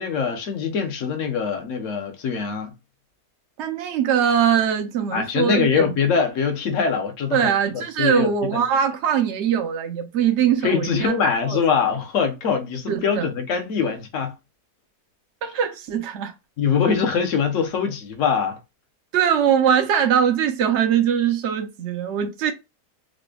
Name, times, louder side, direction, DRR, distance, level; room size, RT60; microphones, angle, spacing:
voice 1, 0.0-2.7 5.1-8.6 10.6-14.3 16.6-18.6, left 6 dB, 60° left, 1.0 m, -23 dB
voice 2, 3.6-5.9 7.3-11.6 12.9-13.3 15.4-16.3 19.1-22.5, right 8 dB, 60° right, 0.8 m, -22 dB
4.9 x 2.1 x 2.3 m
omnidirectional pair, 1.7 m